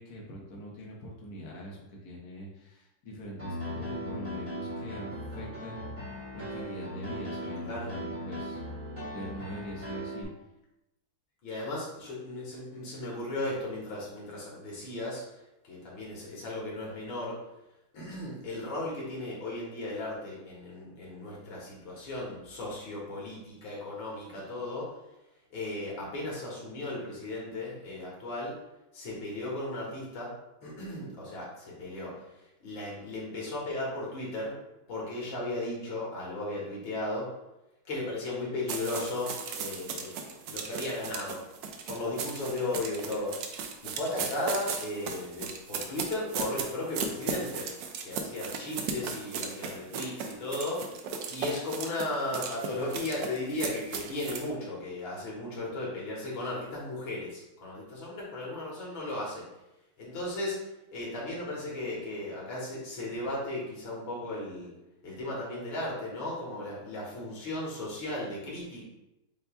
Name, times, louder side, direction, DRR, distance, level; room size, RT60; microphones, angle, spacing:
voice 1, 0.0-5.9 6.3-8.6 9.1-10.3, equal, 60° left, -3 dB, 1.2 m, -43 dB
Piano, 3.4-10.2, equal, 20° right, 1.1 m, -38 dB
voice 2, 11.4-15.2 15.6-17.4 17.9-24.9 25.5-28.5 28.9-30.3 30.6-32.1 32.6-34.5 34.9-37.3 37.9-41.4 41.9-43.4 43.8-47.7 48.0-50.9 51.3-59.4 60.0-60.6 60.9-64.7 65.0-68.8, left 2 dB, 75° left, -5 dB, 2.1 m, -36 dB
sound 1, 38.7-54.5, right 5 dB, 75° right, 1.2 m, -36 dB
7.8 x 2.7 x 2.3 m, 0.93 s
omnidirectional pair, 2.1 m